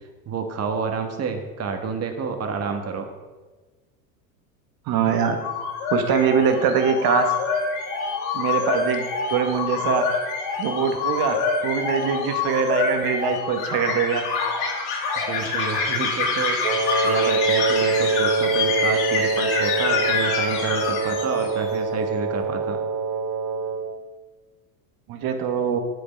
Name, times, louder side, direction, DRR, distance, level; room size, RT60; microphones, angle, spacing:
voice 1, 0.2-3.1 5.1-5.2 15.3-16.6 17.0-22.8, right 5 dB, 35° right, 6 dB, 1.6 m, -29 dB
voice 2, 4.9-5.4 5.9-7.3 8.3-10.0 10.6-11.4 11.6-14.2 25.1-25.8, right 7 dB, 50° right, 6 dB, 1.7 m, -23 dB
sound 1, 5.1-21.7, left 4 dB, 70° left, 2.6 m, -26 dB
Wind instrument woodwind instrument, 16.6-23.9, right 4 dB, 80° right, 1.2 m, -24 dB
9.6 x 7.7 x 5.3 m, 1.3 s
hypercardioid pair, 100°, 45 cm